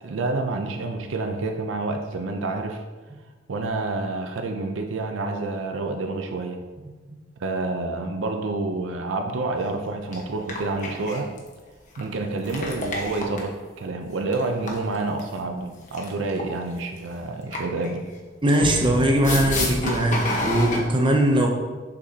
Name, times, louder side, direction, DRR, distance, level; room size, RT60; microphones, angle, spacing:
voice 1, 0.0-2.8 3.5-6.7 7.4-11.3 12.0-18.1, right 3 dB, 80° right, 4 dB, 0.5 m, -28 dB
sound 1, 9.6-9.7 10.1-10.2 10.5-11.5 11.9-12.0 12.4-13.5 14.3-15.2 15.9-16.5 16.8-17.0 17.5-17.9 18.6-20.8, left 1 dB, 40° left, 1.1 m, -28 dB
voice 2, 18.4-21.5, right 1 dB, 25° right, 2 dB, 0.6 m, -20 dB
6.8 x 5.1 x 2.8 m, 1.4 s
head